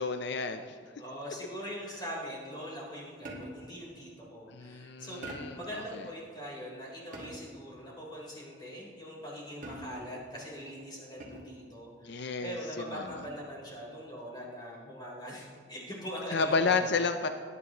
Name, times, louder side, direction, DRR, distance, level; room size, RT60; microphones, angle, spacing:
voice 1, 0.0-0.8 4.5-6.0 12.0-12.6 12.9-13.1 16.3-17.3, left 4 dB, 65° left, 7 dB, 0.5 m, -31 dB
voice 2, 1.0-5.2 5.5-16.9, equal, 25° left, -5 dB, 3.7 m, -42 dB
sound 1, 3.2-3.8 5.2-5.7 7.1-7.6 9.6-10.2 11.2-11.7 13.1-13.5, right 1 dB, 45° right, 1.9 m, -44 dB
20.5 x 9.7 x 3.0 m, 2.2 s
head